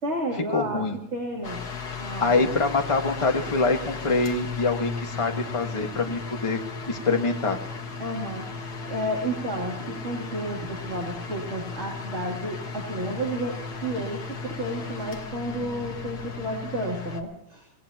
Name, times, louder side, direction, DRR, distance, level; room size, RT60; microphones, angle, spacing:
voice 1, 0.0-0.8 1.1-1.6 2.0-2.4 8.0-8.5 8.9-13.5 13.8-17.6, right 1 dB, 35° right, -3 dB, 3.3 m, -31 dB
voice 2, 0.5-1.0 2.2-6.6 6.9-7.6, left 3 dB, 15° left, 3 dB, 1.5 m, -25 dB
sound 1, 1.4-17.2, left 5 dB, 55° left, 2.0 m, -36 dB
25.5 x 18.5 x 3.0 m, 0.79 s
omnidirectional pair, 2.2 m